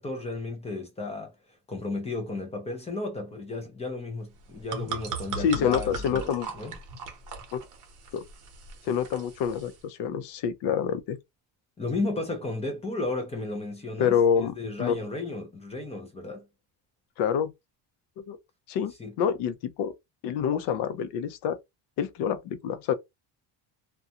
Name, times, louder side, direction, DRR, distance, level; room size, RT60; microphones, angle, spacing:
voice 1, 0.0-1.3 1.7-6.8 11.8-16.4 19.0-19.1, left 2 dB, 15° left, 0.4 m, -34 dB
sound 1, 4.3-9.8, right 4 dB, 40° right, 0.8 m, -38 dB
voice 2, 5.4-6.5 7.5-7.6 8.1-8.2 8.8-11.2 14.0-14.5 14.8-15.0 17.2-17.5 18.2-18.4 18.7-18.9 19.2-19.9 20.2-21.6 22.0-22.9, left 8 dB, 60° left, 0.6 m, -27 dB
2.4 x 2.2 x 2.7 m
cardioid pair, 165°, 47 cm